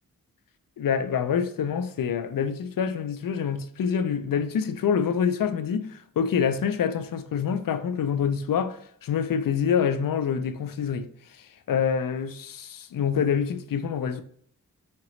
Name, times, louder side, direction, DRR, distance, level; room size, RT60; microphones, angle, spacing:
voice 1, 0.8-11.1 11.4-14.2, left 7 dB, 70° left, 0.5 m, -26 dB
5.0 x 2.9 x 3.0 m
cardioid pair, 55°, 35 cm